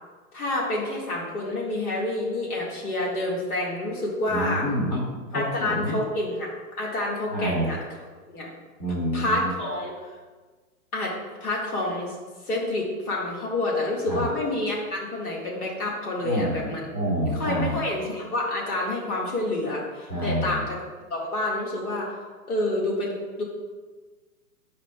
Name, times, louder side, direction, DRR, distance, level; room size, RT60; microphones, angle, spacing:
voice 1, 0.3-4.7 5.3-6.5 6.8-7.8 8.3-8.5 9.1-9.9 10.9-12.2 12.5-16.9 17.4-20.8 21.1-22.1 22.5-23.4, left 2 dB, 75° left, -3 dB, 1.9 m, -28 dB
voice 2, 4.3-5.0 5.3-5.9 7.3-7.7 8.8-9.5 14.1-14.2 16.2-17.8 20.1-20.6, equal, 30° left, -7 dB, 1.8 m, -28 dB
9.0 x 4.9 x 2.3 m, 1.4 s
hypercardioid pair, 180°, 45 cm